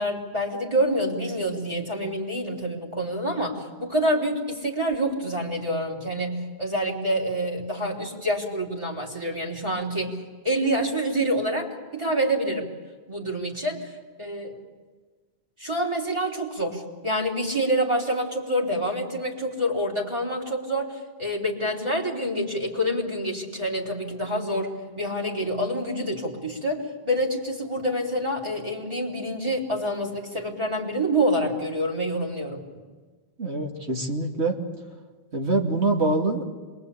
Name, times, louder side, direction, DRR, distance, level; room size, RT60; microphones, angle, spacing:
voice 1, 0.0-10.2 10.4-12.7 13.1-13.9 14.2-14.6 15.6-32.6, equal, 25° right, -2 dB, 3.9 m, -27 dB
voice 2, 33.4-34.6 35.3-36.5, right 2 dB, 80° right, 2 dB, 2.8 m, -24 dB
27.0 x 22.5 x 8.6 m, 1.4 s
omnidirectional pair, 1.1 m